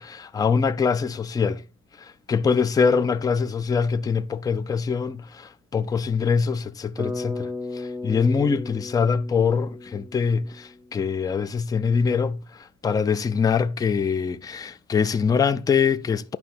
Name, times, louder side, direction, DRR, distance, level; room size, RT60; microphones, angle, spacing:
voice 1, 0.0-1.6 2.0-16.4, left 5 dB, 10° left, 0.4 m, -24 dB
Bass guitar, 7.0-11.1, left 2 dB, 5° right, 1.5 m, -35 dB
9.4 x 5.9 x 4.3 m
cardioid pair, 160°, 31 cm